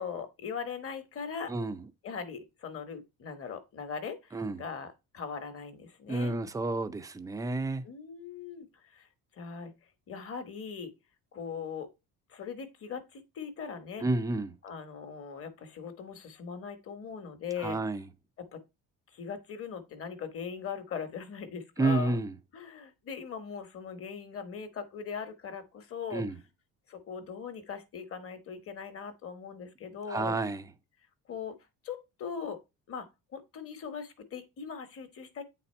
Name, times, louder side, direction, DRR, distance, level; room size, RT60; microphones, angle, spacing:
voice 1, 0.0-1.5 2.0-6.4 7.8-9.1 9.3-9.7 10.1-10.9 11.3-11.9 12.3-14.1 14.6-17.8 18.4-18.6 19.1-22.2 22.5-26.3 26.9-30.4 31.3-31.6 31.8-32.6 32.9-35.4, left 6 dB, 40° left, 1.2 m, -40 dB
voice 2, 1.5-1.8 4.3-4.6 6.1-7.8 14.0-14.5 17.6-18.0 21.8-22.3 26.1-26.3 30.1-30.6, right 2 dB, 10° right, 0.4 m, -30 dB
8.9 x 4.2 x 4.3 m
cardioid pair, 175°, 36 cm